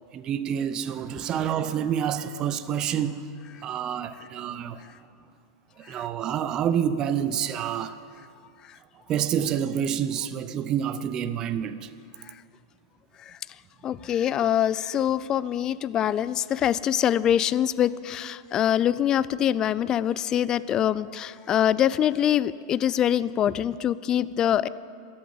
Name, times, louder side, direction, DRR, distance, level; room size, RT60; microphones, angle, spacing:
voice 1, 0.1-3.2 3.6-4.8 5.9-8.0 9.1-11.9, right 9 dB, 35° right, 0.6 m, -28 dB
voice 2, 13.8-24.7, left 10 dB, 35° left, 0.4 m, -24 dB
14.5 x 8.6 x 9.7 m
hypercardioid pair, 95°, 2 cm